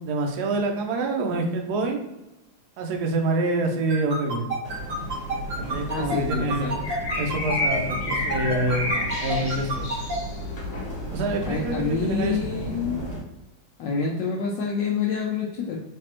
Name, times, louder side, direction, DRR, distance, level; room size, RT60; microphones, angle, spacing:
voice 1, 0.0-2.0 2.8-4.5 5.6-6.8 7.2-9.9 11.1-12.4, right 2 dB, 70° right, 2 dB, 0.9 m, -26 dB
sound 1, 3.9-10.1, right 2 dB, 40° right, 1.4 m, -29 dB
sound 2, 4.6-13.2, left 1 dB, 45° left, 1.3 m, -31 dB
voice 2, 5.9-6.9 11.4-13.1 13.8-15.8, left 4 dB, 75° left, -2 dB, 1.1 m, -27 dB
3.3 x 3.3 x 2.9 m, 0.94 s
omnidirectional pair, 2.3 m